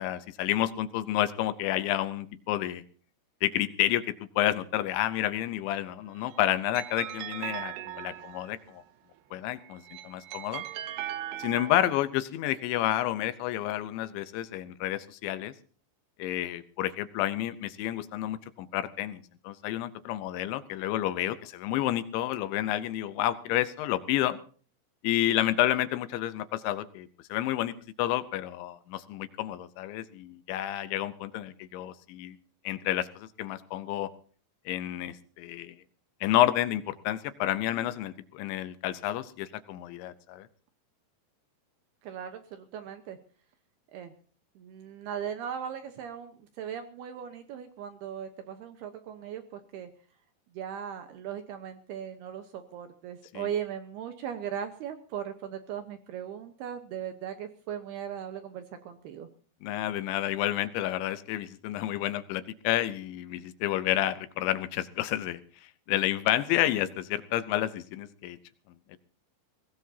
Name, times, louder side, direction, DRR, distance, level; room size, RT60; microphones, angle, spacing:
voice 1, 0.0-2.8 3.4-4.1 4.4-8.8 9.3-10.6 11.4-15.5 16.2-24.4 25.0-32.4 32.6-34.1 34.7-35.7 36.2-40.5 53.3-53.4 59.6-65.4 65.9-68.4 68.9-69.0, left 13 dB, 80° left, 12 dB, 3.0 m, -30 dB
sound 1, 6.1-8.7 9.6-12.1, right 12 dB, 90° right, 2.1 m, -39 dB
voice 2, 42.0-43.2 43.9-44.1 44.6-49.9 50.5-59.3, right 9 dB, 75° right, 7 dB, 2.5 m, -38 dB
22.5 x 18.0 x 2.8 m, 0.42 s
omnidirectional pair, 5.6 m